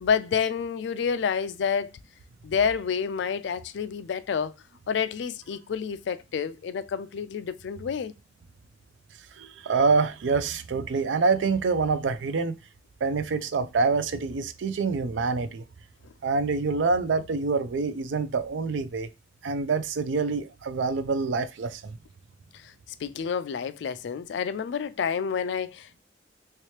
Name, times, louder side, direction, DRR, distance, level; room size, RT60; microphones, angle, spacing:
voice 1, 0.0-1.9 2.4-4.5 4.9-8.1 22.5-22.7 23.0-26.0, left 6 dB, 70° left, 0.3 m, -29 dB
voice 2, 9.4-12.6 13.0-15.6 16.2-19.1 19.4-21.9, right 4 dB, 80° right, 0.4 m, -26 dB
3.2 x 2.9 x 3.1 m
head